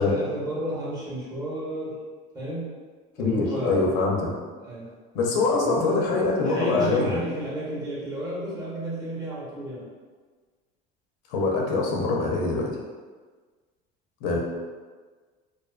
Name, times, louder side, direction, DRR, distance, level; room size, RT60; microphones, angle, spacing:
voice 1, 0.0-2.0 2.3-2.7 3.2-3.9 4.6-4.9 5.6-6.1 6.4-9.9, right 1 dB, 20° right, -8 dB, 0.8 m, -32 dB
voice 2, 3.2-4.3 5.1-7.2 11.3-12.7 14.2-14.4, left 3 dB, 80° left, -1 dB, 0.6 m, -24 dB
2.5 x 2.2 x 2.3 m, 1.4 s
cardioid pair, 150°, 19 cm